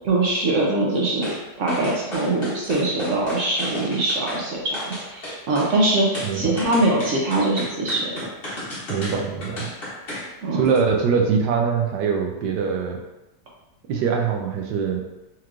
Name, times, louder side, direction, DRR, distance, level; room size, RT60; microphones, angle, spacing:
voice 1, 0.0-8.2 10.4-10.7, right 2 dB, 60° right, -3 dB, 0.9 m, -23 dB
sound 1, 1.2-1.4 1.7-4.4 4.7-5.7 6.1-10.3 10.6-10.8, left 1 dB, 35° left, 1.2 m, -33 dB
voice 2, 6.2-6.6 8.9-9.7 10.5-13.0 13.9-15.0, right 6 dB, 75° right, 2 dB, 1.2 m, -23 dB
4.5 x 3.0 x 2.5 m, 0.98 s
omnidirectional pair, 1.9 m